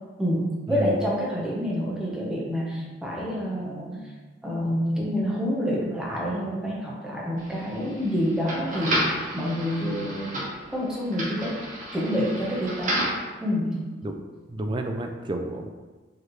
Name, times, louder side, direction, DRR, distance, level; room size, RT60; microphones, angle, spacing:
voice 1, 0.2-4.1 4.4-10.4 10.7-11.6 11.9-13.1 13.4-13.9, equal, 5° right, -5 dB, 0.8 m, -28 dB
sound 1, 7.4-13.3, right 1 dB, 45° right, 1.1 m, -32 dB
voice 2, 14.5-15.7, right 1 dB, 25° right, 4 dB, 0.3 m, -30 dB
4.9 x 3.1 x 3.1 m, 1.3 s
head